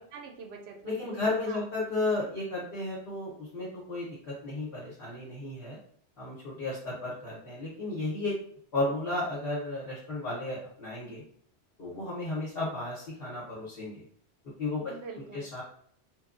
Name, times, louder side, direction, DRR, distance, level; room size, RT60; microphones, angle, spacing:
voice 1, 0.1-1.6 14.9-15.5, right 4 dB, 75° right, 2 dB, 0.9 m, -45 dB
voice 2, 0.8-5.8 6.2-8.3 8.7-11.2 11.8-14.0 14.6-14.8 15.3-15.6, left 2 dB, 65° left, -7 dB, 1.0 m, -33 dB
3.0 x 2.2 x 2.4 m, 0.63 s
omnidirectional pair, 1.1 m